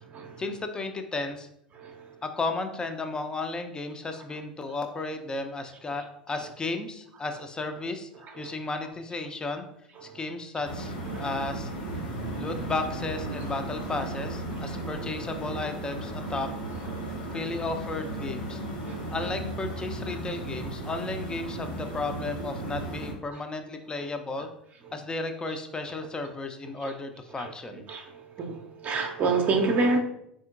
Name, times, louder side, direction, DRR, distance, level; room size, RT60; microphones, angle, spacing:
voice 1, 0.4-1.5 2.2-8.1 8.4-9.7 10.0-11.7 12.4-16.5 17.3-18.6 19.1-24.5 24.9-27.9, left 3 dB, 15° left, 7 dB, 0.5 m, -34 dB
voice 2, 1.8-2.1 8.4-8.5 10.0-10.2 11.1-11.2 14.7-14.8 17.0-17.1 18.8-19.1 26.8-26.9 27.4-27.5 27.9-28.0 28.4-30.0, right 3 dB, 35° right, 3 dB, 0.6 m, -28 dB
sound 1, 10.6-23.1, right 1 dB, 65° left, 1.2 m, -35 dB
4.2 x 3.7 x 2.4 m, 0.74 s
figure-of-eight pair, 80°, 5 cm